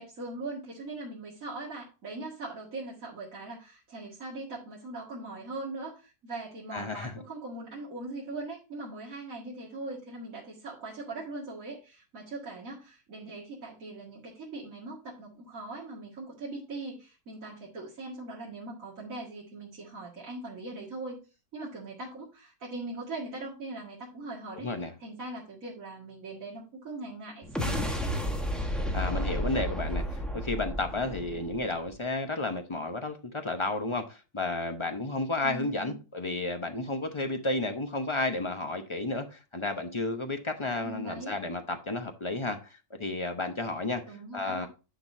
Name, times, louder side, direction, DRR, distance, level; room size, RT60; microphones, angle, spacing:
voice 1, 0.0-21.2 21.5-24.7 25.0-27.9 35.4-35.9 40.8-41.4 44.1-44.7, right 2 dB, 50° right, 2.3 m, -40 dB
voice 2, 6.7-7.1 24.6-24.9 28.9-44.0 44.3-44.7, left 2 dB, 45° left, 0.3 m, -32 dB
sound 1, 27.4-31.9, equal, ahead, 1.1 m, -32 dB
10.5 x 6.1 x 2.7 m
omnidirectional pair, 1.9 m